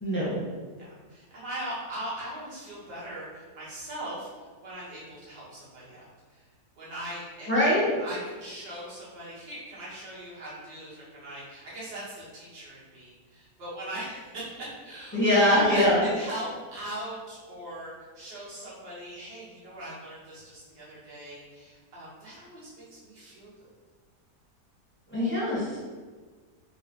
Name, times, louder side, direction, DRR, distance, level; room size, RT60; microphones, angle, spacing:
voice 1, 0.0-0.4 7.5-7.9 15.1-16.0 25.1-25.8, left 1 dB, 15° left, -8 dB, 0.4 m, -22 dB
voice 2, 0.8-4.3 4.6-6.5 6.8-7.5 8.0-23.7, right 1 dB, 75° right, -9 dB, 1.8 m, -40 dB
3.8 x 2.1 x 2.8 m, 1.4 s
omnidirectional pair, 1.7 m